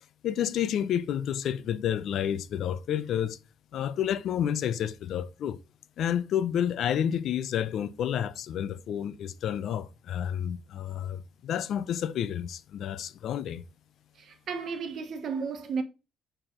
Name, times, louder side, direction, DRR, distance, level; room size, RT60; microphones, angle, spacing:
voice 1, 0.2-3.4 3.7-5.6 6.0-13.6, left 9 dB, 60° left, 0.6 m, -30 dB
voice 2, 14.2-15.8, right 5 dB, 50° right, 1.2 m, -33 dB
6.7 x 4.5 x 3.7 m
cardioid pair, 140°, 0 cm